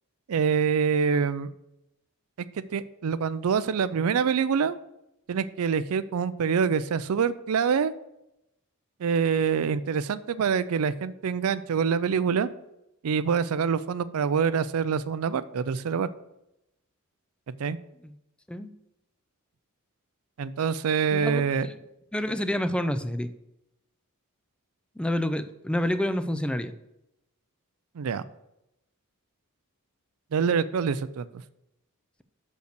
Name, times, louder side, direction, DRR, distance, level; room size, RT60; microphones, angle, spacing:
voice 1, 0.3-1.5 2.6-4.8 5.3-7.9 9.0-12.5 13.0-16.1 17.6-17.8 20.4-21.7 28.0-28.2 30.3-31.4, right 6 dB, 70° right, 15 dB, 0.4 m, -25 dB
voice 2, 21.1-21.7 22.1-23.3 25.0-26.7, left 1 dB, 5° left, 10 dB, 0.4 m, -28 dB
6.6 x 5.3 x 6.6 m, 0.86 s
head